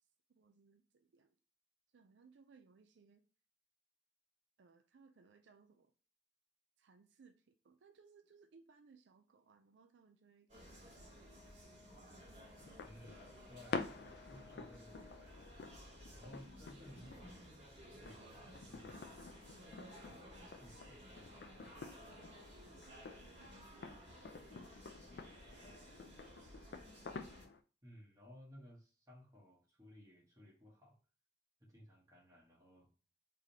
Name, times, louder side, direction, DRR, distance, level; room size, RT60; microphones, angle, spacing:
voice 1, 0.3-1.3 1.9-3.2 4.6-5.9 6.8-11.9 22.5-25.0, right 4 dB, 85° right, 8 dB, 0.4 m, -66 dB
sound 1, 10.5-27.5, equal, 40° right, 2.1 m, -56 dB
Brass instrument, 10.9-15.4, left 2 dB, 30° left, 0.9 m, -64 dB
sound 2, 12.6-27.6, left 4 dB, 60° left, 0.4 m, -50 dB
voice 2, 12.8-14.0 14.3-15.3 16.1-19.3 20.0-21.4 27.8-31.0 31.6-32.9, equal, 20° right, -4 dB, 1.5 m, -59 dB
3.7 x 3.3 x 2.8 m, 0.36 s
head